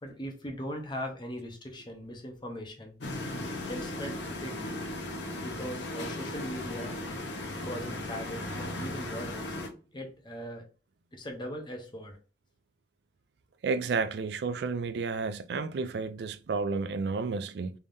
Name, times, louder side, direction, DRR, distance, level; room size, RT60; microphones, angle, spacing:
voice 1, 0.0-3.0 3.7-4.8 5.4-7.0 7.6-9.6 9.9-10.7 11.1-12.2, equal, 25° left, 0.8 m, -40 dB
sound 1, 3.0-9.7, left 1 dB, 75° left, 0.9 m, -37 dB
voice 2, 13.6-17.7, right 4 dB, 65° right, 0.4 m, -31 dB
3.5 x 3.4 x 2.6 m
head